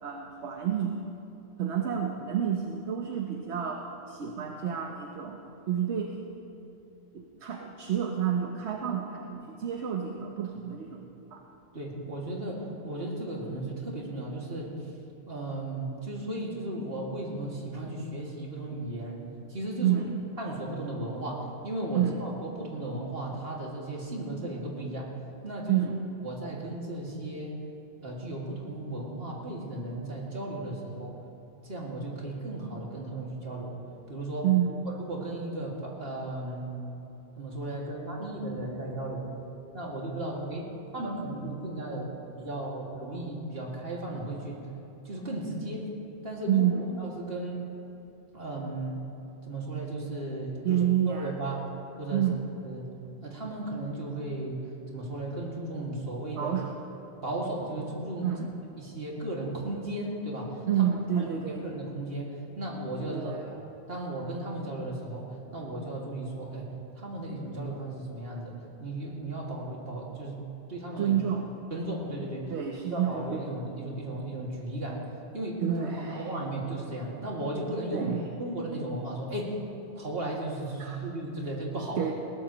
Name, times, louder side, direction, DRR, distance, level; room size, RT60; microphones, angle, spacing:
voice 1, 0.0-1.0 1.6-5.4 5.7-6.2 7.1-11.4 19.8-20.2 21.9-22.2 25.7-26.0 34.4-34.8 46.5-46.8 50.6-51.3 52.1-52.4 56.3-56.7 58.2-58.5 60.7-61.6 63.1-63.5 71.0-71.5 72.5-73.4 75.6-76.3 77.9-78.2 80.8-81.0 82.0-82.1, right 9 dB, 80° right, 1 dB, 1.2 m, -29 dB
voice 2, 11.7-14.9 15.3-19.2 19.5-20.0 20.4-25.1 25.4-25.9 26.2-27.5 28.0-31.1 31.6-33.8 34.1-34.5 35.0-36.7 37.4-39.3 39.7-40.6 40.9-42.1 42.4-44.6 45.0-45.9 46.2-46.7 47.0-47.6 48.3-49.0 49.5-51.7 52.0-52.3 52.6-52.9 53.2-56.5 57.2-58.3 58.8-60.9 61.1-63.6 63.9-66.7 67.0-68.5 68.8-70.4 70.7-71.1 71.7-72.5 72.9-75.0 75.3-75.6 76.2-78.1 78.4-79.5 80.0-82.0, right 1 dB, 60° right, -3 dB, 2.5 m, -35 dB
21.0 x 17.5 x 3.1 m, 2.9 s
omnidirectional pair, 1.1 m